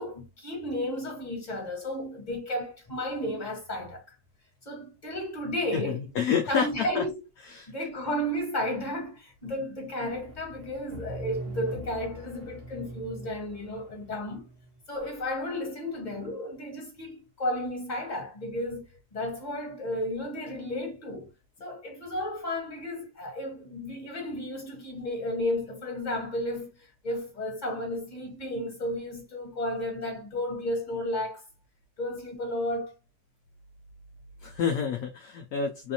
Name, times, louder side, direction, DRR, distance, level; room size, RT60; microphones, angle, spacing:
voice 1, 0.0-4.0 4.6-6.1 6.5-7.2 7.7-14.5 14.9-21.3 21.6-31.4 32.0-32.9, left 1 dB, 25° left, 1.6 m, -33 dB
voice 2, 5.7-6.7 6.9-7.0 7.5-7.7 34.4-35.9, left 7 dB, 70° left, 1.0 m, -28 dB
sound 1, 10.1-15.0, right 1 dB, 40° right, 1.1 m, -42 dB
4.0 x 2.5 x 2.8 m
omnidirectional pair, 1.8 m